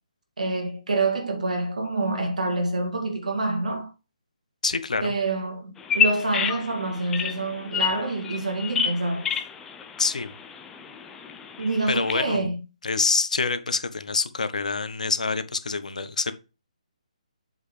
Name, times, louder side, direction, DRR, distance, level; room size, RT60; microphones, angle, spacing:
voice 1, 0.4-3.9 5.0-9.3 11.6-12.6, right 2 dB, 75° right, 2.2 m, -27 dB
voice 2, 4.6-5.1 10.0-10.3 11.6-12.4 12.8-16.3, left 4 dB, 75° left, 1.1 m, -26 dB
Bird vocalization bird call bird song, 5.8-12.1, left 7 dB, 10° left, 0.6 m, -29 dB
7.8 x 5.4 x 3.2 m
figure-of-eight pair, 150°, 4 cm